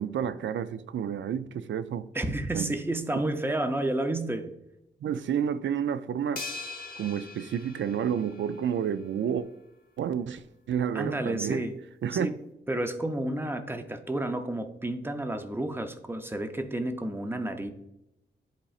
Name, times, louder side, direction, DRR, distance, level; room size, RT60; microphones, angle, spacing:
voice 1, 0.0-2.1 2.5-2.7 5.0-6.4 7.0-9.5 10.0-11.7 12.0-12.3, right 8 dB, 70° right, 0.4 m, -30 dB
voice 2, 2.1-4.5 10.9-11.8 12.1-12.4 12.7-17.7, right 1 dB, 10° right, 0.5 m, -31 dB
sound 1, 6.4-8.8, left 3 dB, 45° left, 0.8 m, -41 dB
10.5 x 4.2 x 2.4 m
wide cardioid pair, 160°, 20 cm